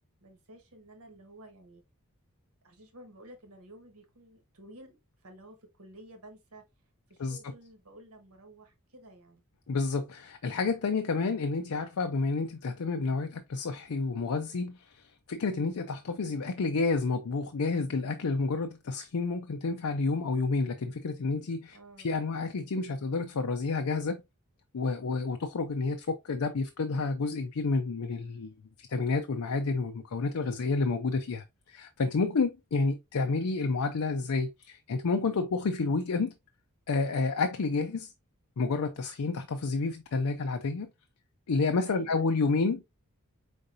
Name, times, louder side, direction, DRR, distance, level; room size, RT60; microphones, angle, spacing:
voice 1, 0.2-1.8 2.6-6.6 7.1-9.4 21.7-22.1 41.8-42.3, right 1 dB, 75° right, 1.4 m, -52 dB
voice 2, 9.7-21.8 22.0-24.2 24.7-36.3 36.9-38.1 38.6-40.9 41.5-42.8, left 3 dB, 70° left, 0.5 m, -30 dB
5.1 x 3.9 x 2.6 m
head